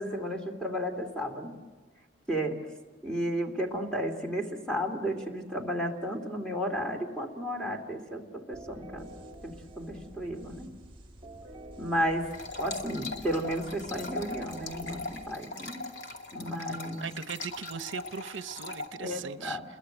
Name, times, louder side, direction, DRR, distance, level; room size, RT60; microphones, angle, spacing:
voice 1, 0.0-1.6 2.3-2.7 3.0-9.1 9.4-10.8 11.8-15.9 16.3-17.1 19.0-19.6, equal, 5° left, 3 dB, 2.6 m, -33 dB
sound 1, 8.5-16.2, right 1 dB, 30° right, 1.8 m, -49 dB
sound 2, 12.3-18.9, left 2 dB, 80° left, 2.3 m, -40 dB
voice 2, 17.0-19.6, right 7 dB, 75° right, 13 dB, 0.7 m, -39 dB
29.5 x 22.0 x 8.0 m, 1.3 s
head